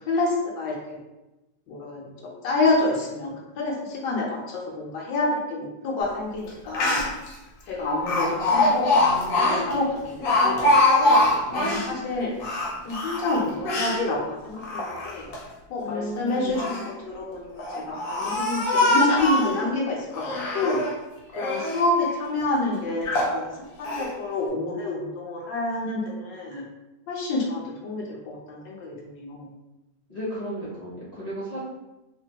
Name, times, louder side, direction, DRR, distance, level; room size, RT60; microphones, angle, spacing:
voice 1, 0.1-1.0 1.7-7.1 7.7-12.4 12.8-15.3 15.7-20.3 20.5-20.8 21.4-23.5 23.8-26.6 27.1-29.5, left 2 dB, 85° left, -3 dB, 1.3 m, -28 dB
Speech, 6.5-6.6 6.7-7.3 8.1-11.9 12.4-14.0 14.6-15.4 16.3-16.9 17.6-19.6 20.1-21.0 21.3-21.9 22.4-22.5 23.0-23.4 23.8-24.1, left 2 dB, 65° left, 0.9 m, -23 dB
voice 2, 15.8-16.7 30.1-31.6, equal, 45° left, -8 dB, 0.5 m, -33 dB
3.2 x 2.1 x 2.8 m, 1.0 s
omnidirectional pair, 1.9 m